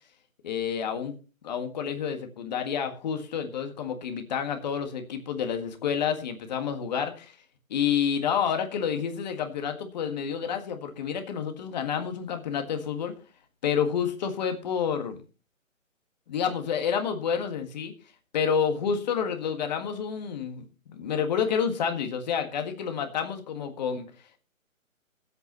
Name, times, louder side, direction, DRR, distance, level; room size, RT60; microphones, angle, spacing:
voice 1, 0.4-1.2 1.4-7.4 7.7-13.1 13.6-15.2 16.3-17.9 18.3-24.1, left 7 dB, 30° left, 6 dB, 1.7 m, -29 dB
21.5 x 8.3 x 3.0 m, 0.34 s
hypercardioid pair, 155°, 41 cm